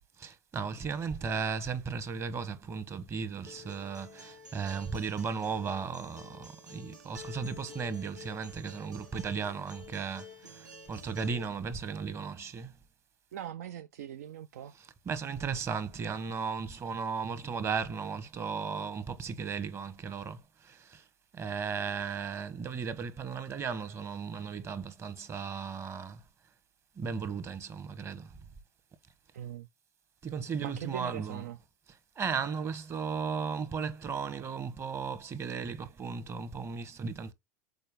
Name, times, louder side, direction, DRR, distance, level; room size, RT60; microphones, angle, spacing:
voice 1, 0.2-12.7 15.1-21.0 21.3-26.2 27.0-28.3 30.2-31.4 32.2-37.3, right 5 dB, 30° right, 1.1 m, -36 dB
Acoustic guitar, 3.5-11.4, left 3 dB, 80° right, 1.8 m, -50 dB
voice 2, 13.3-14.8 29.3-29.7 30.6-31.6, right 10 dB, 65° right, 0.4 m, -41 dB
6.8 x 4.5 x 3.6 m
figure-of-eight pair, 80°, 9 cm